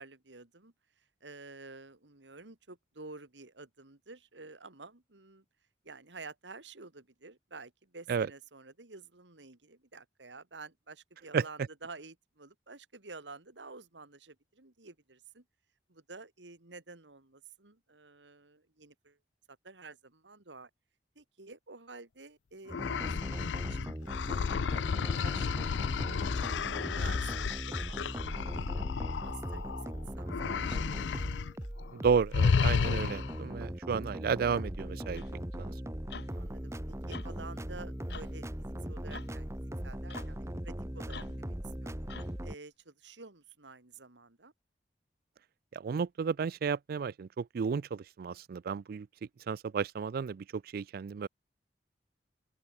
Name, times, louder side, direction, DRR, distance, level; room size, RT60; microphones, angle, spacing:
voice 1, 0.0-5.4 5.8-15.4 15.9-19.2 19.6-20.7 21.2-26.3 26.8-28.9 29.2-31.4 36.3-39.5 39.8-42.0 42.4-44.5, right 3 dB, 90° right, 2.4 m, -51 dB
sound 1, 22.7-29.9 30.3-31.5 31.8-32.0 32.3-33.5, left 5 dB, 85° left, 0.4 m, -32 dB
sound 2, 22.7-42.6, equal, 15° right, 1.4 m, -39 dB
voice 2, 31.9-35.2 35.6-35.7 45.7-49.1 49.5-51.3, right 6 dB, 55° right, 0.3 m, -32 dB
sound 3, 35.1-35.4 36.1-36.3 37.1-37.4 38.1-38.4 39.1-39.4 40.1-40.3 41.1-41.4 42.1-42.4, left 5 dB, 65° left, 1.5 m, -46 dB
open air
head